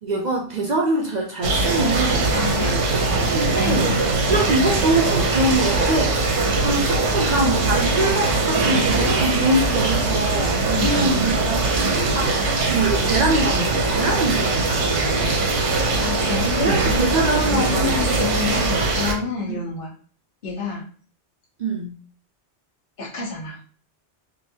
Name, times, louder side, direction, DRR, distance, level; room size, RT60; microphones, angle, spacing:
voice 1, 0.0-2.3 3.3-4.0 4.3-12.4 12.7-14.9 16.6-18.1 19.5-19.6 21.6-22.0, right 2 dB, 55° right, 0 dB, 0.5 m, -24 dB
sound 1, 1.4-19.1, right 3 dB, 85° right, 1.1 m, -21 dB
voice 2, 2.3-2.8 3.5-4.0 10.7-11.3 15.9-17.1 17.5-19.9 20.4-20.9 23.0-23.6, left 4 dB, 50° left, -3 dB, 1.2 m, -28 dB
3.8 x 2.5 x 2.7 m, 0.42 s
omnidirectional pair, 1.2 m